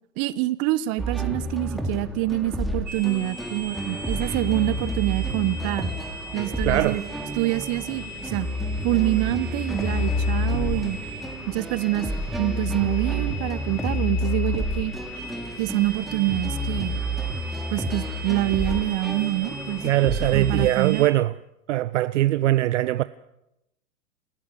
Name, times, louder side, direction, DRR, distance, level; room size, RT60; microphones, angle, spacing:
voice 1, 0.2-5.9 6.3-7.0 7.4-8.5 8.8-11.0 11.5-12.1 12.4-14.9 15.6-17.0 17.7-19.8 20.3-21.1, right 18 dB, 35° right, 1.2 m, -26 dB
sound 1, 1.0-20.7, equal, ahead, 2.5 m, -29 dB
sound 2, 2.9-21.1, right 1 dB, 20° right, 2.9 m, -40 dB
voice 2, 6.7-7.0 19.8-21.3 21.7-23.0, right 15 dB, 60° right, 0.7 m, -21 dB
29.0 x 13.5 x 7.0 m
hypercardioid pair, 110°, 42 cm